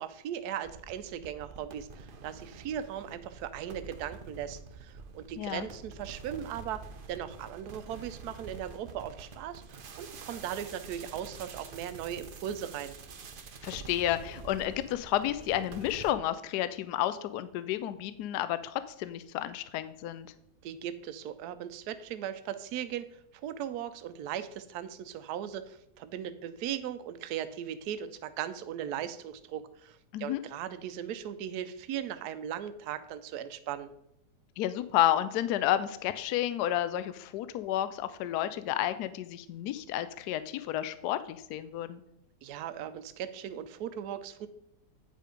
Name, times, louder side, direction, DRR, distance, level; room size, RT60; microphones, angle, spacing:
voice 1, 0.0-6.8 7.1-13.0 20.6-33.9 42.4-44.5, right 10 dB, 75° right, 12 dB, 1.1 m, -38 dB
sound 1, 0.6-16.1, right 4 dB, 50° right, 0.6 m, -47 dB
voice 2, 5.4-5.7 13.6-20.3 30.1-30.4 34.6-42.0, left 12 dB, 75° left, 13 dB, 1.1 m, -31 dB
9.2 x 5.1 x 5.1 m, 0.77 s
omnidirectional pair, 1.8 m